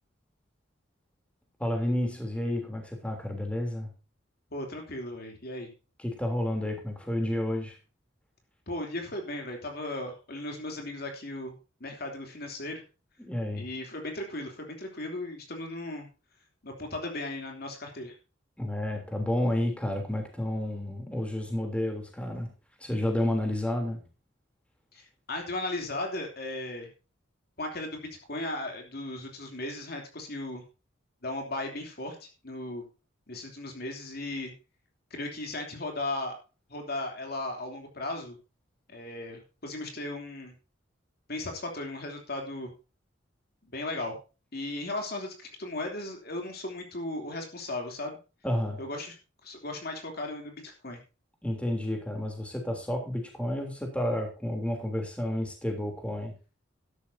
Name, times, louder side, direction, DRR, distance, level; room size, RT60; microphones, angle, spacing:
voice 1, 1.6-3.9 6.0-7.8 13.2-13.6 18.6-22.5 22.8-24.0 48.4-48.8 51.4-56.3, left 1 dB, 5° left, 2 dB, 3.2 m, -30 dB
voice 2, 4.5-5.7 8.7-11.5 11.8-12.8 13.5-16.1 16.6-18.1 24.9-26.9 27.6-30.6 31.2-32.8 33.3-34.5 35.1-36.4 36.7-38.4 38.9-40.5 41.3-42.7 43.7-44.1 44.5-48.2 48.8-49.1 49.4-51.0, left 2 dB, 55° left, 3 dB, 3.0 m, -36 dB
12.5 x 12.5 x 2.8 m, 0.32 s
head